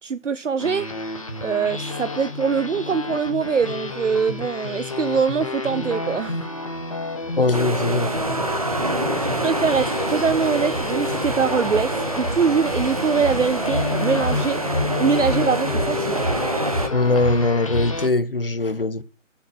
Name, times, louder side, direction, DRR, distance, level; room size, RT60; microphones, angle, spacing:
voice 1, 0.0-0.9 1.4-6.4 9.2-14.6 15.0-16.2, right 6 dB, 65° right, 0.8 m, -23 dB
sound 1, 0.6-18.1, left 2 dB, 25° left, 1.5 m, -29 dB
voice 2, 7.4-8.1 16.9-19.0, left 2 dB, 45° left, 1.1 m, -21 dB
sound 2, 7.5-16.9, right 1 dB, 30° right, 1.2 m, -26 dB
10.5 x 7.2 x 7.3 m
figure-of-eight pair, 180°, 39 cm